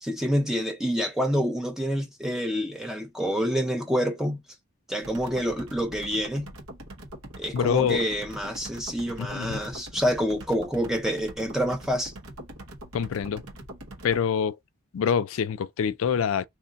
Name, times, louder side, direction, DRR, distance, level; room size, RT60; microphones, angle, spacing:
voice 1, 0.0-4.4 4.9-6.5 7.4-12.1, equal, ahead, 0.5 m, -27 dB
sound 1, 5.0-14.2, right 1 dB, 85° right, 1.2 m, -43 dB
voice 2, 7.5-8.0 9.2-9.6 12.9-13.4 14.0-14.5 14.9-16.5, left 7 dB, 70° left, 0.4 m, -25 dB
3.1 x 2.5 x 3.9 m
head